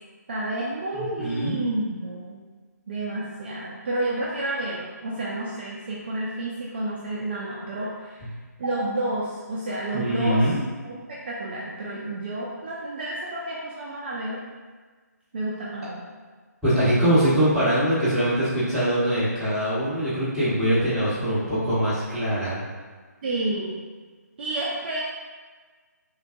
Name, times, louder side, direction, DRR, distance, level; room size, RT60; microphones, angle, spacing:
voice 1, 0.3-2.4 2.9-8.3 8.6-10.5 10.8-14.4 15.3-16.0 23.2-23.8 24.4-25.0, right 2 dB, 35° right, -6 dB, 0.5 m, -30 dB
voice 2, 0.9-1.6 9.9-10.6 16.6-22.6, equal, ahead, -16 dB, 1.3 m, -23 dB
5.5 x 2.3 x 2.6 m, 1.4 s
hypercardioid pair, 160°, 10 cm